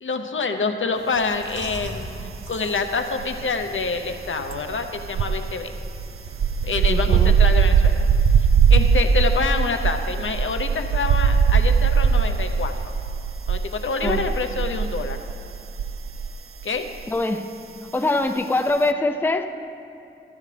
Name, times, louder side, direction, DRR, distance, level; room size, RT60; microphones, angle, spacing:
voice 1, 0.0-5.7 6.6-8.0 8.7-12.7 13.5-15.2 16.6-16.9, left 4 dB, 70° left, 6 dB, 0.8 m, -26 dB
Chewing mastication, 0.9-12.8, equal, 65° right, 2.3 m, -44 dB
sound 1, 1.7-2.6 2.8-16.4 16.6-16.9, right 6 dB, 80° right, 0.4 m, -20 dB
voice 2, 6.9-7.3 14.0-14.2 17.1-17.5 17.9-19.4, left 2 dB, 10° left, 6 dB, 0.5 m, -23 dB
14.5 x 11.5 x 3.4 m, 2.6 s
wide cardioid pair, 75°, 21 cm